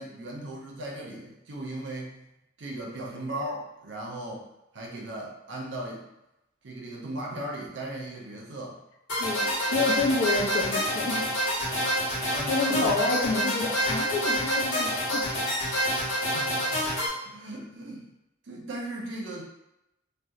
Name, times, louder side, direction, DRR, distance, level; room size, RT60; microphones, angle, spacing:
voice 1, 0.0-2.2 2.6-4.5 4.7-6.0 6.6-8.8 12.3-13.1 16.3-16.9 17.2-18.1 18.4-19.5, right 1 dB, 80° right, -1 dB, 0.5 m, -37 dB
sound 1, 9.1-17.1, equal, 90° left, 0.8 m, -27 dB
voice 2, 9.2-11.2 12.5-15.3, left 3 dB, 70° left, 1 dB, 0.4 m, -28 dB
2.7 x 2.1 x 2.3 m, 0.89 s
head